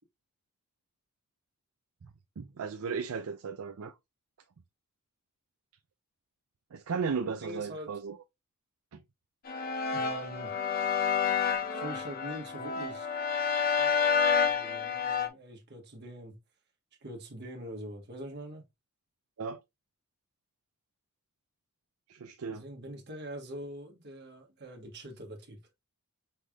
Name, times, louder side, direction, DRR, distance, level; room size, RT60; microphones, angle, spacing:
voice 1, 2.4-3.9 6.7-8.2 19.4-19.6 22.1-22.6, right 5 dB, 70° right, 0.5 m, -35 dB
voice 2, 7.4-7.9 9.9-10.6 11.7-13.2 13.7-13.9 14.4-16.4 17.0-18.6 22.4-25.6, right 1 dB, 50° right, 1.4 m, -43 dB
sound 1, 9.5-15.3, left 6 dB, 45° left, 0.7 m, -29 dB
5.7 x 3.3 x 2.3 m
head